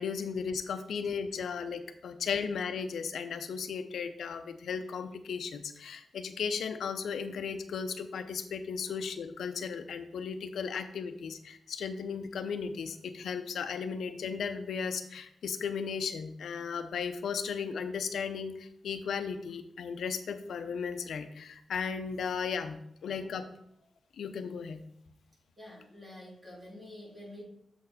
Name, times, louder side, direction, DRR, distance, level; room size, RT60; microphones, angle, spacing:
voice 1, 0.0-23.5 24.2-24.8, left 6 dB, 85° left, 9 dB, 0.7 m, -35 dB
voice 2, 25.6-27.4, left 1 dB, 15° right, -5 dB, 3.1 m, -47 dB
7.0 x 6.6 x 4.2 m, 0.73 s
wide cardioid pair, 115°, 0 cm